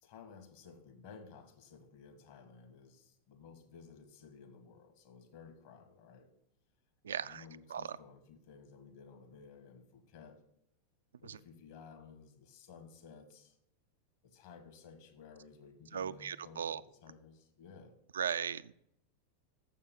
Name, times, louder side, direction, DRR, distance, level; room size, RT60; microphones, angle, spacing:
voice 1, 0.0-6.3 7.1-10.4 11.2-13.6 14.2-17.9, left 5 dB, 50° left, 5 dB, 1.6 m, -55 dB
voice 2, 7.0-7.4 7.7-7.8 11.3-11.4 15.9-16.8 18.1-18.7, right 8 dB, 65° right, 15 dB, 0.3 m, -37 dB
7.2 x 6.6 x 7.0 m, 0.77 s
figure-of-eight pair, 90°, 0 cm